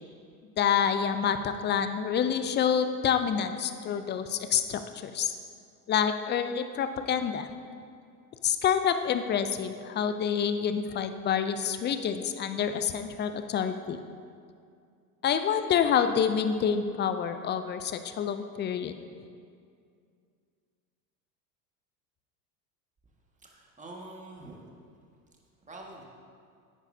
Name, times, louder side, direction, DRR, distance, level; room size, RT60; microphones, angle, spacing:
voice 1, 0.6-5.4 5.9-7.5 8.4-14.0 15.2-18.9, left 8 dB, 25° left, 9 dB, 0.5 m, -27 dB
voice 2, 23.4-24.7 25.7-26.0, right 2 dB, 15° right, -1 dB, 1.7 m, -45 dB
11.0 x 8.9 x 2.7 m, 2.3 s
hypercardioid pair, 85°, 47 cm